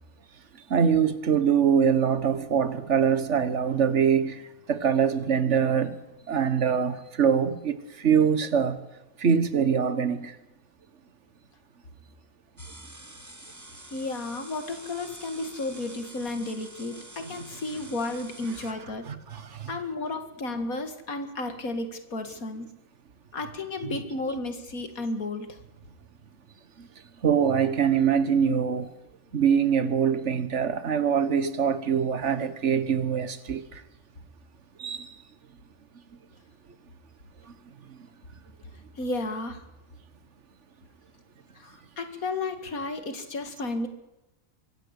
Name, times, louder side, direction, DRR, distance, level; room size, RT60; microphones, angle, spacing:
voice 1, 0.7-4.4 4.7-6.0 6.3-8.8 9.2-10.3 17.2-17.6 18.6-18.7 19.0-19.8 23.8-24.0 26.8-26.9 27.2-28.9 29.3-33.8 34.8-35.1 37.9-38.0, right 7 dB, 50° right, 13 dB, 1.7 m, -24 dB
sound 1, 12.6-18.7, right 1 dB, 10° right, 1.8 m, -47 dB
voice 2, 13.9-19.0 19.7-22.7 23.3-25.5 39.0-39.6 41.6-43.9, left 2 dB, 70° left, 8 dB, 2.4 m, -33 dB
24.5 x 15.0 x 8.3 m, 0.97 s
omnidirectional pair, 1.6 m